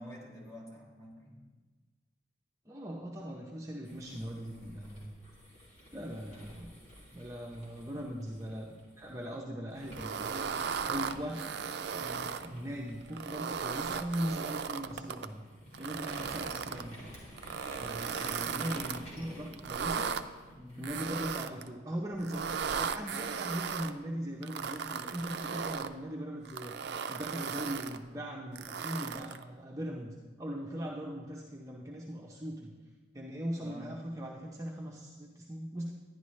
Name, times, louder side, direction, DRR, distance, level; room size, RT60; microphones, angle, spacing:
voice 1, 0.0-1.4 20.6-21.0 33.6-34.0, equal, 15° left, -5 dB, 2.1 m, -48 dB
voice 2, 2.7-5.1 5.9-6.7 7.1-8.7 9.0-10.5 10.9-11.4 11.9-15.4 15.8-17.1 17.7-20.1 20.8-22.4 22.8-32.7 33.1-35.9, equal, 15° right, -2 dB, 0.7 m, -40 dB
sound 1, 3.8-9.2 9.7-21.4, equal, 40° left, 2.6 m, -52 dB
sound 2, 9.9-12.5 13.1-15.3 15.7-16.8 17.4-19.0 19.5-20.2 20.8-21.7 22.2-23.9 24.4-25.9 26.4-28.0 28.6-29.4, right 6 dB, 60° right, 0.4 m, -36 dB
11.0 x 10.5 x 3.2 m, 1.4 s
head